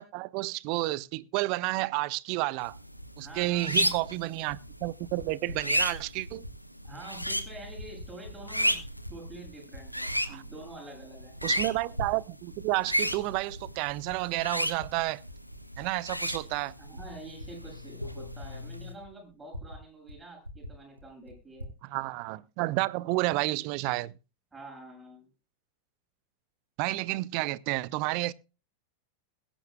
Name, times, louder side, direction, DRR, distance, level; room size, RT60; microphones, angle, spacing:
voice 1, 0.0-2.8 3.2-6.4 10.3-10.4 11.4-15.2 15.8-16.7 21.9-24.1 26.8-28.3, right 20 dB, 45° right, 0.6 m, -30 dB
sound 1, 2.6-18.9, equal, 90° left, 1.2 m, -34 dB
voice 2, 3.2-3.9 6.3-6.4 6.8-8.8 9.1-11.3 16.8-21.7 24.5-25.3, right 2 dB, 10° right, 7.6 m, -47 dB
Typing, 3.3-3.4 4.3-5.3 5.9-6.6 6.8-7.3 7.6-8.7 9.0-10.2 10.7-10.8 11.4-12.2 12.5-14.9 15.2-19.8 20.1-20.2 20.4-21.8, left 1 dB, 85° right, 1.9 m, -46 dB
21.5 x 10.0 x 2.2 m
figure-of-eight pair, 90°, 0 cm